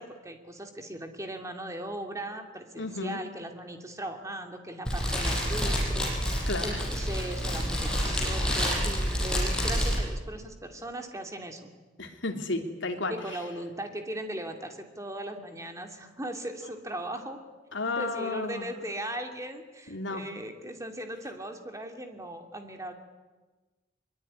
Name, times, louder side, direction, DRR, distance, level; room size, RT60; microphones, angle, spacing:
voice 1, 0.0-11.7 12.0-12.1 13.1-17.4 18.0-22.9, right 1 dB, 15° right, 5 dB, 2.6 m, -38 dB
voice 2, 2.8-3.2 6.5-6.8 12.0-13.1 17.7-18.7 19.9-20.2, left 2 dB, 70° left, 4 dB, 3.0 m, -32 dB
Fire, 4.8-10.0, equal, 5° left, 7.0 m, -28 dB
23.5 x 22.5 x 9.9 m, 1.3 s
head